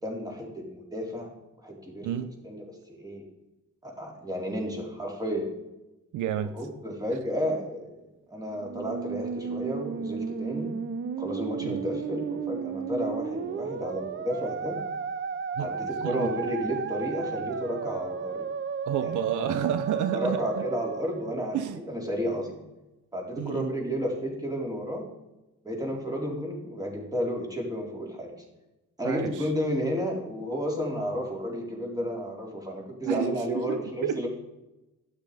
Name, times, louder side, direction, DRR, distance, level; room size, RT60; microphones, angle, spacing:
voice 1, 0.0-1.3 1.6-2.1 2.4-3.2 3.8-5.5 6.4-10.7 11.2-14.8 15.6-18.5 19.0-19.5 20.1-22.6 23.1-25.1 25.6-28.3 29.0-34.3, equal, 10° right, -1 dB, 3.8 m, -32 dB
voice 2, 6.1-6.5 11.6-11.8 15.6-15.7 16.0-16.3 18.9-20.6 21.5-21.8 23.4-23.7 29.0-29.5 33.0-34.3, right 10 dB, 80° right, 11 dB, 0.7 m, -30 dB
Musical instrument, 8.5-21.9, right 6 dB, 40° right, 0.8 m, -34 dB
12.0 x 9.9 x 5.1 m, 0.99 s
cardioid pair, 90°, 30 cm